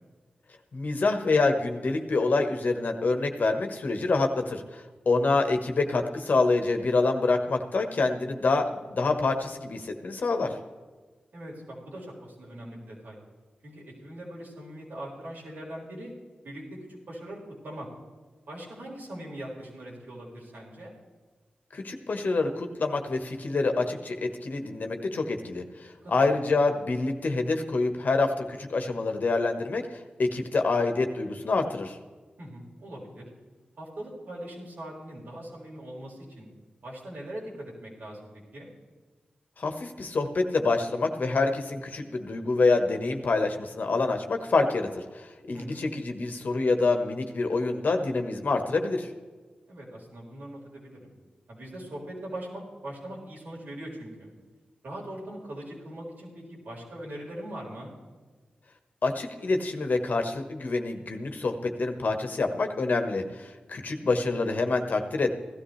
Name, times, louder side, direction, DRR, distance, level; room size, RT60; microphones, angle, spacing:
voice 1, 0.7-10.5 21.7-32.0 39.6-49.1 59.0-65.3, left 3 dB, 65° left, 5 dB, 1.4 m, -26 dB
voice 2, 11.3-13.2 13.6-16.1 16.4-17.9 18.5-20.9 26.0-26.1 26.5-26.6 32.4-33.3 33.8-36.5 36.8-38.7 45.5-45.8 49.7-51.1 51.5-54.3 54.8-58.0 64.1-64.4, right 1 dB, 80° right, -4 dB, 4.6 m, -41 dB
16.5 x 13.0 x 3.3 m, 1.4 s
cardioid pair, 65°, 3 cm